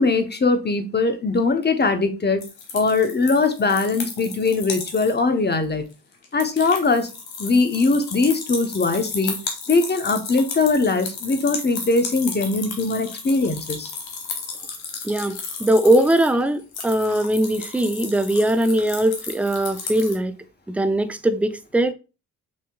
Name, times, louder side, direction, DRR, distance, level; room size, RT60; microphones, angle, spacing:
voice 1, 0.0-2.4 2.7-5.8 6.3-7.1 7.4-9.4 9.7-13.9, left 3 dB, 25° left, 0.9 m, -21 dB
sound 1, 2.4-5.2 5.5-5.6 5.9-20.2, left 5 dB, 85° left, 1.1 m, -34 dB
voice 2, 15.0-20.3 20.7-21.9, right 1 dB, 5° right, 0.5 m, -20 dB
6.2 x 2.8 x 2.3 m
supercardioid pair, 50°, 37 cm